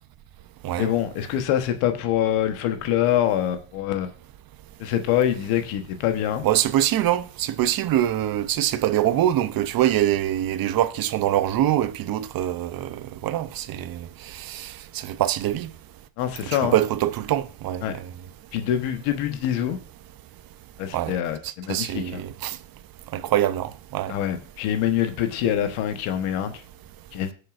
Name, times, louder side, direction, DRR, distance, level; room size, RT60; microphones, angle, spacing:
voice 1, 0.8-4.1 4.8-6.5 16.2-16.7 17.8-17.9 18.5-19.8 20.8-22.2 24.1-26.5 27.1-27.3, left 10 dB, 90° left, 1.2 m, -25 dB
voice 2, 6.4-15.7 16.5-17.8 20.9-21.1 21.7-22.6 23.1-24.1, right 12 dB, 45° right, 0.6 m, -24 dB
19.5 x 6.6 x 2.5 m
cardioid pair, 130°, 50 cm